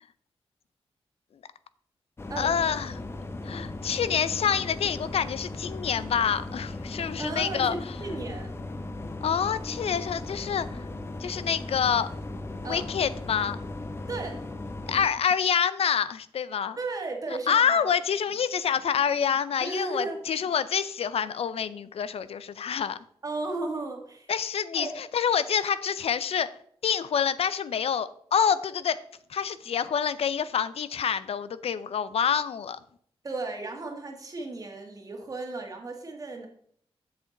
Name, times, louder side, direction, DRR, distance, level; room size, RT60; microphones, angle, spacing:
sound 1, 2.2-15.1, left 2 dB, 25° left, 0.7 m, -37 dB
voice 1, 2.4-2.9 3.4-7.7 9.2-10.8 11.2-12.1 12.7-13.6 14.9-16.8 17.3-23.0 24.3-26.5 26.8-29.0 29.3-32.8, left 7 dB, 80° left, 15 dB, 0.5 m, -27 dB
voice 2, 7.2-8.5 12.6-12.9 14.1-14.4 16.8-17.9 19.6-20.2 23.2-24.3 24.8-25.0 33.2-36.5, right 3 dB, 35° right, 2 dB, 1.5 m, -35 dB
8.0 x 7.7 x 3.8 m, 0.64 s
wide cardioid pair, 160°, 10 cm